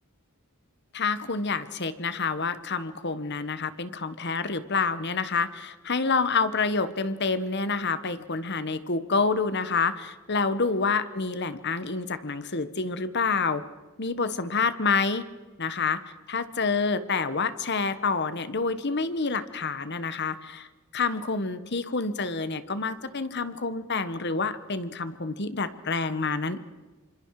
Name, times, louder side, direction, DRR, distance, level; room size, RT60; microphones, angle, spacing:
voice 1, 0.9-13.6 14.0-15.2 15.6-16.0 16.3-20.7 20.9-26.6, left 4 dB, 50° left, 13 dB, 1.3 m, -28 dB
28.0 x 26.0 x 4.9 m, 1.3 s
head